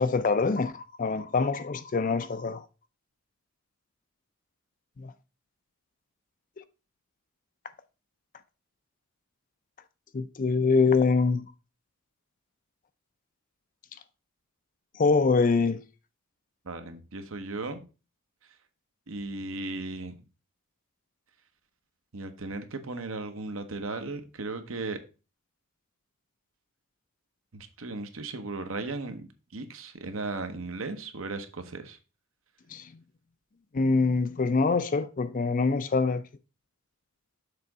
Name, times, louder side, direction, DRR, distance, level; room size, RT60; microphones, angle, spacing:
voice 1, 0.0-2.6 5.0-5.1 6.6-6.7 10.1-11.5 15.0-15.8 32.7-32.9 33.7-36.2, left 4 dB, 40° left, 0.4 m, -24 dB
voice 2, 16.6-17.8 19.1-20.2 22.1-25.0 27.5-32.0, right 3 dB, 65° right, 0.9 m, -36 dB
6.7 x 3.9 x 4.7 m
head